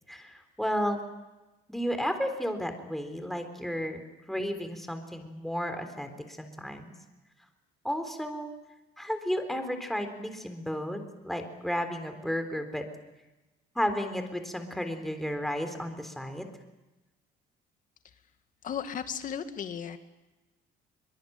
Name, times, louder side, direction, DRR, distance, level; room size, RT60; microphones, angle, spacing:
voice 1, 0.1-1.0 1.7-6.9 7.8-8.5 9.0-12.9 13.8-16.6, equal, ahead, 7 dB, 3.8 m, -33 dB
voice 2, 18.6-20.0, left 8 dB, 50° left, 9 dB, 2.3 m, -35 dB
23.0 x 23.0 x 8.9 m, 1.1 s
cardioid pair, 110°, 17 cm